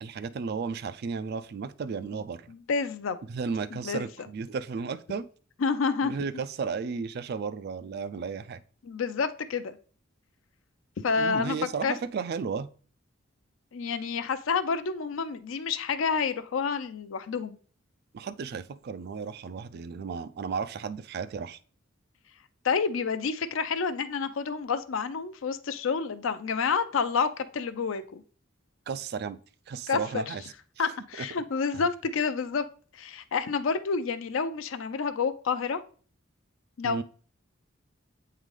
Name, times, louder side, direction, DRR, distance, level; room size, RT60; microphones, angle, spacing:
voice 1, 0.0-2.5 3.3-5.3 6.0-8.6 11.1-12.7 18.1-21.6 28.9-29.4 29.7-30.4 30.8-30.9 31.2-31.3 31.7-31.8 36.8-37.0, right 5 dB, 55° right, 0.3 m, -34 dB
voice 2, 2.5-3.2 3.7-4.0 5.6-6.1 8.8-9.8 11.0-11.6 11.8-11.9 13.7-17.6 22.6-28.2 29.9-30.3 30.8-32.7 32.9-35.8 36.8-37.0, left 5 dB, 80° left, 0.5 m, -29 dB
8.1 x 3.8 x 3.2 m
head